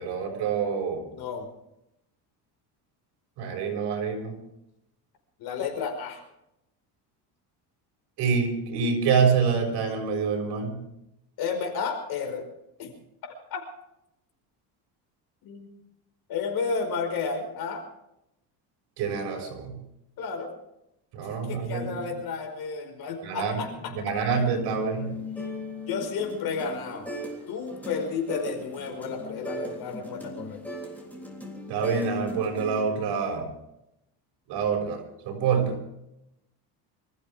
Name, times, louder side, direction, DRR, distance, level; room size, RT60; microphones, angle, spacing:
voice 1, 0.0-1.0 3.4-4.4 8.2-10.8 19.0-19.8 21.1-22.1 23.2-25.1 31.7-33.5 34.5-35.8, right 6 dB, 70° right, 2 dB, 6.4 m, -26 dB
voice 2, 1.1-1.5 5.4-6.2 11.4-12.5 12.8-12.9 13.5-13.6 15.4-15.7 16.3-17.8 20.2-20.5 21.4-24.1 25.2-25.5 25.9-27.1 27.5-30.6, left 5 dB, 60° left, 3 dB, 5.3 m, -32 dB
sound 1, 24.5-27.4 27.7-32.9, left 1 dB, 5° left, 3.5 m, -38 dB
26.5 x 15.0 x 3.6 m, 0.84 s
cardioid pair, 150°, 42 cm